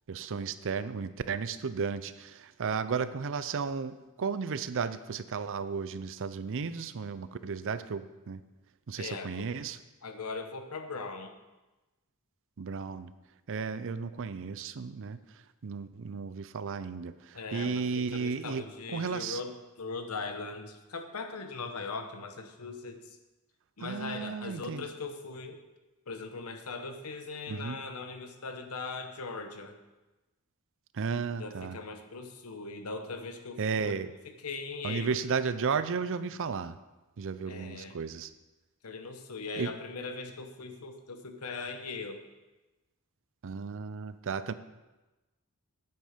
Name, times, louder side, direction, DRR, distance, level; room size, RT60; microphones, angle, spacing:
voice 1, 0.1-8.4 8.9-9.8 12.6-13.1 13.5-15.2 15.6-19.4 23.8-24.8 27.5-27.8 30.9-31.8 33.6-34.1 34.8-36.7 37.2-38.3 39.5-39.8 43.4-44.5, right 5 dB, 60° right, 13 dB, 0.5 m, -34 dB
voice 2, 9.0-9.5 10.0-11.3 17.3-23.2 23.8-25.6 26.1-29.8 31.4-33.9 34.2-35.2 37.5-38.0 38.8-42.2, left 4 dB, 75° left, 7 dB, 1.0 m, -40 dB
9.1 x 8.2 x 5.1 m, 1.1 s
head